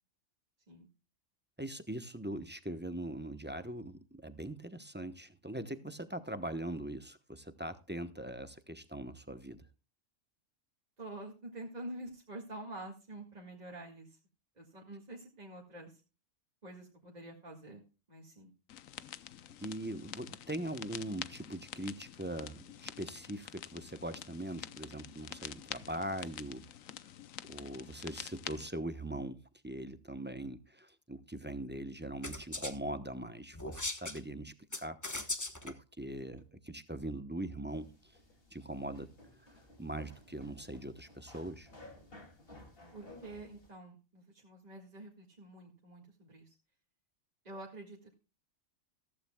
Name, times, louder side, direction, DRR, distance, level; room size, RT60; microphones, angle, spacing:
voice 1, 1.6-9.7 19.6-26.7 27.5-35.0 35.6-38.1 38.5-39.1 39.8-41.7, right 1 dB, 10° right, 0.8 m, -41 dB
voice 2, 11.0-14.2 14.6-16.0 16.6-17.8 18.1-18.5 42.9-46.5 47.4-48.1, right 1 dB, 30° right, 2.0 m, -47 dB
sound 1, 18.7-28.7, left 11 dB, 85° left, 1.1 m, -47 dB
sound 2, 32.2-32.7 33.5-34.2 34.7-35.7, left 2 dB, 15° left, 1.0 m, -38 dB
sound 3, 37.7-43.7, left 2 dB, 45° left, 2.8 m, -56 dB
15.0 x 14.5 x 2.3 m
omnidirectional pair, 1.3 m